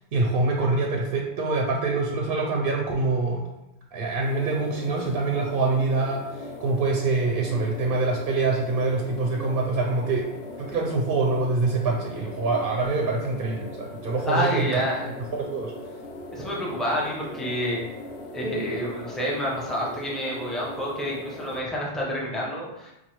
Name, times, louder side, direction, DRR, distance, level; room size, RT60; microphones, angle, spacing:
voice 1, 0.1-3.4 3.9-10.3 10.6-14.8 15.4-15.7, right 3 dB, 65° right, 0 dB, 0.7 m, -25 dB
sound 1, 4.2-21.6, left 2 dB, 80° left, 0.9 m, -39 dB
voice 2, 14.3-15.1 16.3-17.8 18.3-22.9, equal, ahead, -4 dB, 0.5 m, -28 dB
4.6 x 2.3 x 2.9 m, 0.90 s
omnidirectional pair, 1.1 m